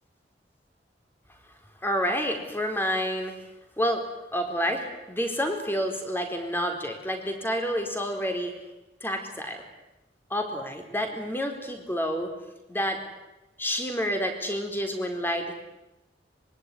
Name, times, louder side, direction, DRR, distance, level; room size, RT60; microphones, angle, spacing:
voice 1, 1.8-3.3 3.8-4.0 4.3-8.5 9.0-9.6 10.3-12.3 12.7-13.0 13.6-15.5, equal, 10° left, 4 dB, 4.2 m, -29 dB
25.5 x 23.0 x 9.8 m, 0.97 s
head